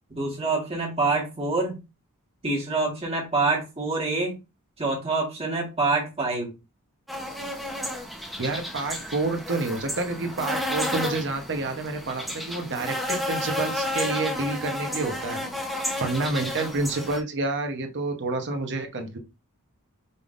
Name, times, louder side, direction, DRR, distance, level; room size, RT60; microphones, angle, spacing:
voice 1, 0.1-1.8 2.4-4.3 4.8-6.5 15.3-15.5, right 3 dB, 25° right, -1 dB, 1.6 m, -26 dB
sound 1, 7.1-17.2, left 1 dB, ahead, 0.9 m, -31 dB
voice 2, 8.4-15.7 16.0-19.2, right 3 dB, 55° right, 5 dB, 1.0 m, -29 dB
5.4 x 3.5 x 2.6 m, 0.27 s
head